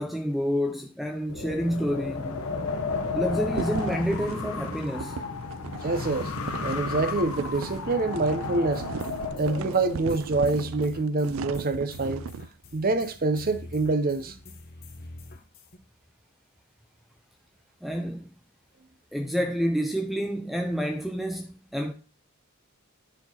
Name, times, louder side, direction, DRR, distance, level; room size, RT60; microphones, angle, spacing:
voice 1, 0.0-2.5 3.1-5.2 17.8-18.3 19.1-21.9, equal, ahead, 0.4 m, -29 dB
Wind, 1.3-10.0, left 4 dB, 80° left, 1.0 m, -33 dB
sound 1, 3.5-12.5, right 7 dB, 65° right, 0.3 m, -38 dB
voice 2, 5.8-6.3 6.6-8.9 9.4-12.2 12.7-14.4, right 3 dB, 45° right, 0.7 m, -26 dB
sound 2, 8.7-15.8, left 2 dB, 45° left, 1.1 m, -46 dB
9.9 x 4.3 x 4.2 m
head